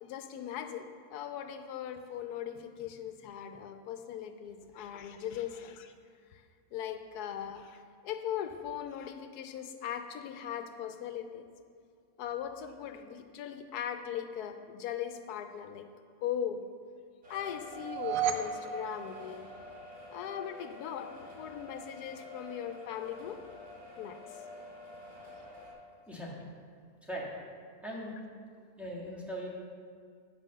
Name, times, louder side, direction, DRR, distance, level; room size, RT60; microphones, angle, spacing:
voice 1, 0.0-5.9 6.3-6.4 6.7-11.4 12.2-15.9 16.2-16.6 17.3-19.5 20.1-21.1 21.4-23.4 24.0-24.2, left 9 dB, 90° left, 8 dB, 1.1 m, -39 dB
sound 1, 17.2-25.7, left 2 dB, 85° right, 3.1 m, -49 dB
sound 2, 17.7-20.0, right 8 dB, 70° right, 0.9 m, -35 dB
voice 2, 26.1-26.4 27.0-27.3 27.8-28.2 28.6-29.5, equal, ahead, -5 dB, 1.6 m, -40 dB
8.1 x 5.5 x 6.4 m, 2.1 s
omnidirectional pair, 1.6 m